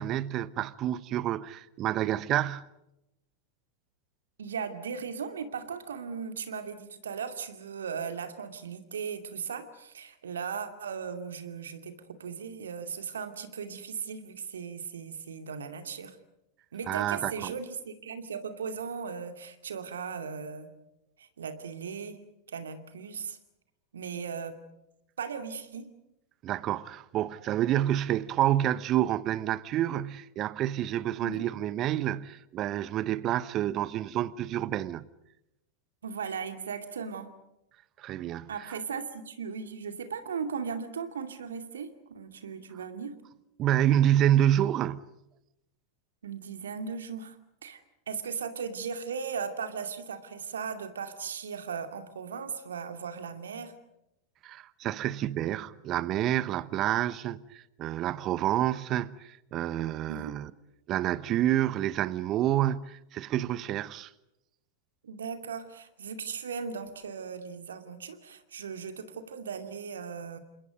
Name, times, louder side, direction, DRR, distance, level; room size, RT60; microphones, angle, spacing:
voice 1, 0.0-2.7 16.9-17.5 26.4-35.0 38.0-38.5 43.6-45.0 54.4-60.5 60.9-64.1, right 12 dB, 35° right, 1.0 m, -28 dB
voice 2, 4.4-16.2 16.7-20.7 21.2-22.2 22.5-23.4 23.9-24.6 25.2-25.9 31.2-31.4 36.0-37.3 38.5-43.1 46.2-47.4 47.6-47.8 48.1-53.7 60.1-60.3 65.0-70.4, right 6 dB, 70° right, 2.5 m, -37 dB
29.0 x 26.5 x 5.2 m
figure-of-eight pair, 90°, 0 cm